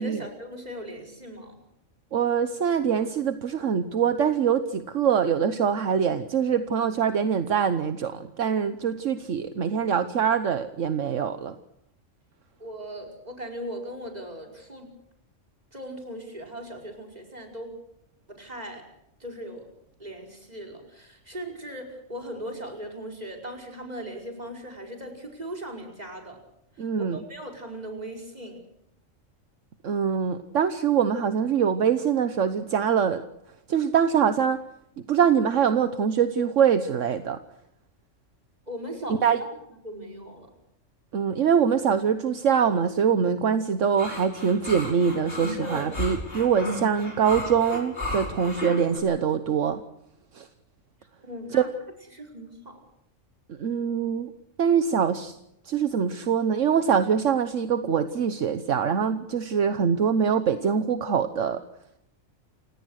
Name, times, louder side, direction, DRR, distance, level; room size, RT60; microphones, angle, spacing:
voice 1, 0.0-1.5 12.6-14.9 15.7-17.7 18.3-18.8 19.2-19.7 20.0-26.4 27.0-28.6 38.7-39.5 39.8-40.5 45.6-45.9 51.2-51.7 52.1-52.8, equal, 30° right, 2 dB, 5.2 m, -38 dB
voice 2, 2.1-11.5 26.8-27.2 29.8-33.2 33.7-34.6 35.1-37.4 39.2-39.4 41.1-49.8 50.4-50.5 51.5-51.6 53.6-54.3 54.6-55.3 55.7-61.6, right 7 dB, 70° right, 10 dB, 1.4 m, -24 dB
sound 1, 44.0-49.0, left 1 dB, 45° left, 6.0 m, -33 dB
28.5 x 18.0 x 6.4 m, 0.78 s
omnidirectional pair, 1.3 m